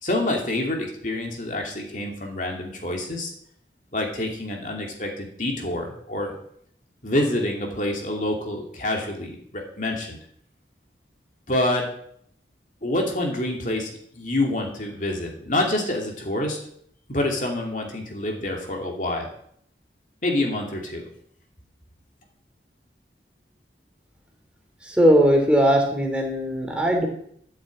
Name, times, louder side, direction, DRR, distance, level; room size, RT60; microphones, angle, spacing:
voice 1, 0.0-3.3 3.9-6.3 7.0-10.2 11.5-11.9 12.8-16.6 17.1-19.3 20.2-21.1, left 1 dB, 45° left, 1 dB, 2.6 m, -27 dB
voice 2, 24.8-27.1, equal, 5° right, 1 dB, 2.8 m, -19 dB
13.5 x 7.4 x 8.6 m, 0.66 s
head